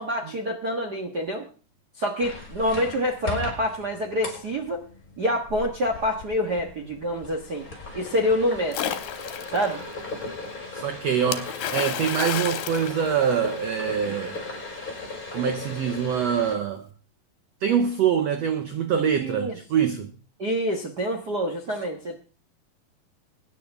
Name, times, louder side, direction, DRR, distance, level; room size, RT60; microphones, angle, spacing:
voice 1, 0.0-1.5 2.0-4.8 5.2-7.6 7.9-9.0 9.5-9.8 14.0-14.2 19.2-19.6 20.4-22.1, equal, 60° right, 1.0 m, -27 dB
sound 1, 2.2-16.6, left 3 dB, 20° left, 4.6 m, -37 dB
Splash splatter, 8.7-9.7 11.3-13.8, left 11 dB, 75° left, 2.8 m, -31 dB
voice 2, 10.7-14.4 15.3-16.9 17.6-20.1, right 8 dB, 80° right, 1.5 m, -24 dB
23.0 x 9.9 x 3.5 m
omnidirectional pair, 4.2 m